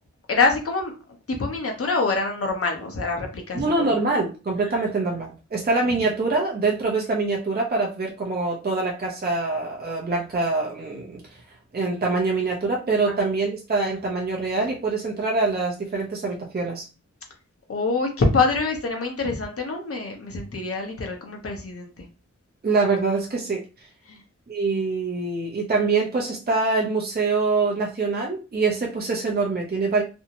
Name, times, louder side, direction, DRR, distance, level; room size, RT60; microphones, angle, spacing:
voice 1, 0.3-0.9 1.3-3.8 4.7-4.8 5.8-6.1 13.1-13.2 17.7-22.1 24.1-24.2, left 3 dB, 50° left, 2 dB, 0.7 m, -25 dB
voice 2, 3.5-11.2 11.7-16.8 22.6-23.6 24.5-30.0, right 3 dB, 35° right, -1 dB, 0.5 m, -24 dB
2.6 x 2.0 x 2.8 m, 0.32 s
wide cardioid pair, 75°, 30 cm